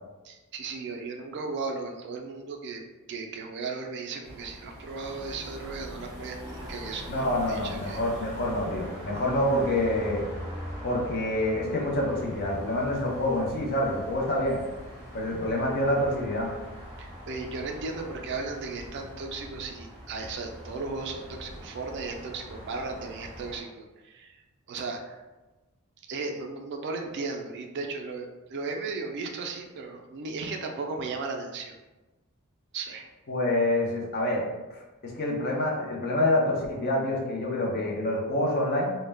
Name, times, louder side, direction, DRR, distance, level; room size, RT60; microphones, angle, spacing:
voice 1, 0.2-8.0 17.0-24.4 24.7-25.2 26.1-31.8 32.7-33.0, right 4 dB, 50° right, 3 dB, 0.3 m, -36 dB
sound 1, 4.2-23.6, equal, 15° left, 0.8 m, -42 dB
voice 2, 7.1-10.2 10.8-14.6 15.1-16.5 33.3-34.4 34.7-39.0, left 1 dB, 45° left, -1 dB, 0.5 m, -27 dB
2.1 x 2.1 x 3.2 m, 1.1 s
head